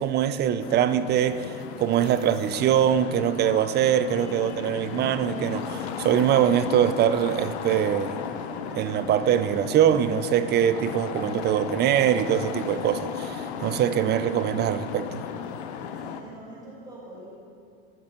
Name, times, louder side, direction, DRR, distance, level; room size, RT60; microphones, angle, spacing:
voice 1, 0.0-8.2 8.7-15.2, right 9 dB, 35° right, 13 dB, 0.4 m, -23 dB
sound 1, 0.6-16.2, left 7 dB, 80° left, 0.8 m, -35 dB
Traffic noise roadway noise, 4.8-11.7, left 2 dB, 20° left, 1.6 m, -48 dB
voice 2, 15.9-17.3, right 1 dB, 10° right, -7 dB, 2.3 m, -44 dB
13.5 x 5.3 x 5.2 m, 2.5 s
supercardioid pair, 105°, 32 cm